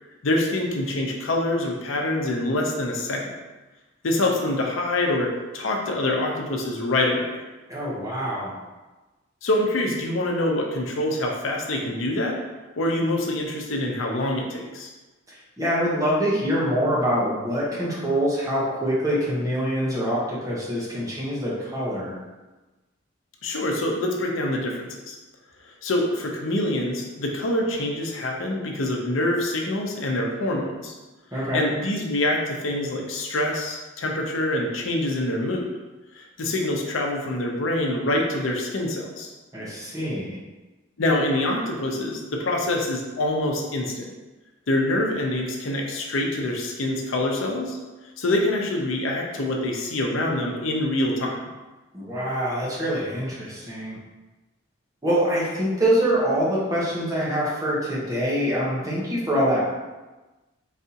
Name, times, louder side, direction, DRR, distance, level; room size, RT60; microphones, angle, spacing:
voice 1, 0.2-3.2 4.0-7.4 9.4-12.4 12.8-14.9 23.4-25.2 25.7-31.0 31.5-35.7 36.1-39.3 41.0-44.1 44.7-47.8 48.2-51.5, left 1 dB, 80° left, 0 dB, 0.7 m, -25 dB
voice 2, 7.7-8.5 15.6-22.2 31.3-31.6 39.5-40.4 51.9-54.0 55.0-59.6, equal, 15° right, -7 dB, 1.0 m, -25 dB
4.1 x 3.5 x 2.8 m, 1.2 s
head